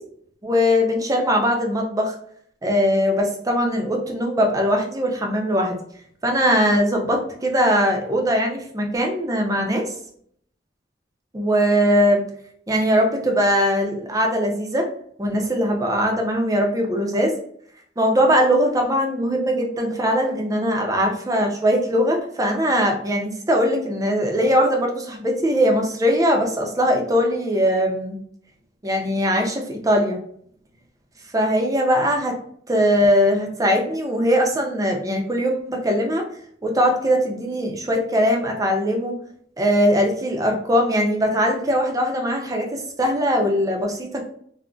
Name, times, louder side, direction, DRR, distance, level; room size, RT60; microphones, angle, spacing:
voice 1, 0.4-2.2 2.6-5.8 6.2-9.9 11.3-12.3 12.7-14.9 15.2-17.3 18.0-28.2 28.8-30.2 31.3-32.4 32.7-36.3 36.6-39.2 39.6-44.3, equal, 20° right, 2 dB, 0.5 m, -20 dB
3.7 x 2.1 x 2.3 m, 0.63 s
head